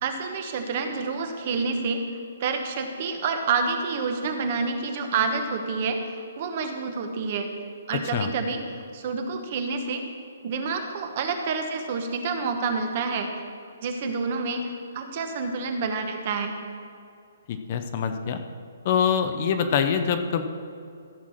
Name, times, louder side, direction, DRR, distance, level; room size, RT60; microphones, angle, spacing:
voice 1, 0.0-2.1 2.4-6.1 6.4-7.5 7.9-8.6 8.9-10.1 10.4-13.3 13.8-16.6, right 4 dB, 30° right, 5 dB, 1.0 m, -28 dB
voice 2, 17.5-18.4 18.8-20.4, left 7 dB, 30° left, 7 dB, 0.6 m, -24 dB
14.0 x 6.0 x 6.4 m, 2.5 s
hypercardioid pair, 175°, 0 cm